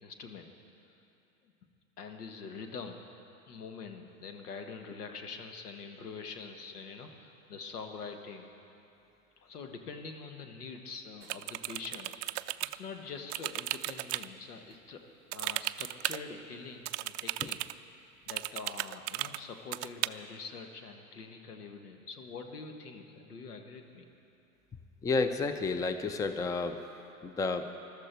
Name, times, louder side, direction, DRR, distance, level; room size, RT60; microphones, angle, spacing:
voice 1, 0.0-0.5 1.4-1.5 2.0-3.1 3.5-8.5 9.4-15.0 15.3-17.6 18.3-24.1, left 5 dB, 80° left, 5 dB, 1.6 m, -45 dB
sound 1, 11.2-12.8 13.3-14.3 15.3-16.2 16.8-17.7 18.3-19.4 19.7-20.1, right 18 dB, 50° right, 0.4 m, -35 dB
voice 2, 25.0-26.8 27.2-27.7, left 3 dB, 10° left, 9 dB, 0.5 m, -31 dB
20.5 x 13.0 x 4.5 m, 2.8 s
hypercardioid pair, 90°, 45 cm